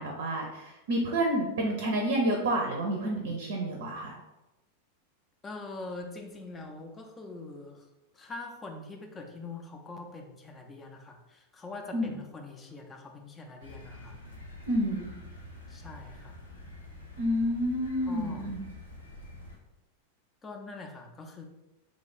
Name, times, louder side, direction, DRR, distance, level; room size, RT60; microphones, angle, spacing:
voice 1, 0.0-4.2 11.9-12.1 14.7-15.1 17.2-18.6, right 1 dB, 55° right, 1 dB, 0.6 m, -29 dB
voice 2, 5.4-7.9 8.1-14.2 15.7-16.4 18.1-18.4 20.4-21.4, left 3 dB, 20° left, 3 dB, 0.5 m, -43 dB
sound 1, 13.6-19.6, left 1 dB, 90° left, 0.8 m, -47 dB
3.1 x 2.4 x 4.0 m, 0.98 s
figure-of-eight pair, 90°, 0 cm